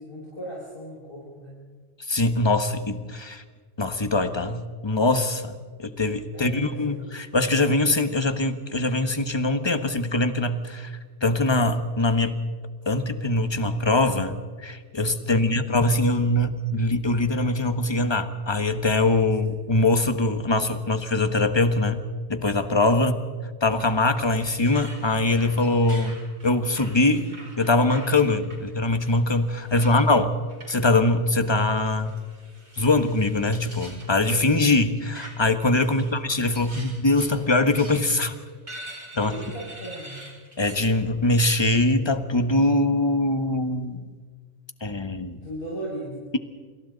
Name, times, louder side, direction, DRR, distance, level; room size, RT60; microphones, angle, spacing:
voice 1, 0.0-1.6 5.7-5.8 6.3-7.0 15.2-15.5 23.0-23.2 29.7-30.0 35.8-36.2 39.1-40.3 45.4-46.3, right 1 dB, 45° left, -6 dB, 6.3 m, -38 dB
voice 2, 2.1-3.4 3.8-5.5 5.8-12.4 12.9-22.0 22.3-23.2 23.6-26.2 26.4-27.3 27.6-30.3 30.7-32.1 32.8-38.3 39.2-39.3 40.6-44.0 44.8-45.4, left 2 dB, 25° left, 9 dB, 1.3 m, -22 dB
sound 1, 23.8-28.6 29.0-30.0 30.5-31.1 31.8-34.1 34.7-35.5 35.8-40.9 41.2-41.5, right 1 dB, 90° right, 5.1 m, -44 dB
29.0 x 26.5 x 4.0 m, 1.5 s
omnidirectional pair, 1.2 m